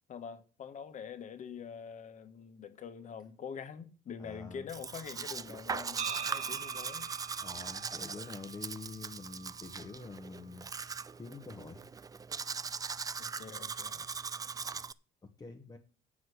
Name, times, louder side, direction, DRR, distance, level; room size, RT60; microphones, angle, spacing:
voice 1, 0.1-7.1 13.2-14.1, left 7 dB, 45° left, 1.3 m, -45 dB
voice 2, 4.2-4.7 7.4-10.7 11.2-11.8 15.4-15.8, left 3 dB, 20° left, 1.2 m, -46 dB
Domestic sounds home sounds, 4.7-14.9, right 5 dB, 20° right, 0.4 m, -40 dB
sound 1, 6.0-10.0, right 7 dB, 35° right, 0.8 m, -44 dB
8.1 x 6.3 x 8.0 m
cardioid pair, 110°, 17 cm